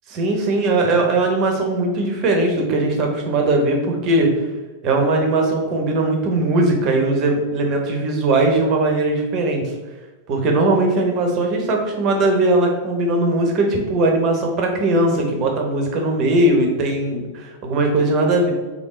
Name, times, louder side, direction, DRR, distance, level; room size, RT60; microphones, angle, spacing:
voice 1, 0.1-4.4 4.8-9.7 10.3-18.5, right 2 dB, 40° right, 2 dB, 0.9 m, -19 dB
3.7 x 3.7 x 3.7 m, 1.2 s
figure-of-eight pair, 90°, 0 cm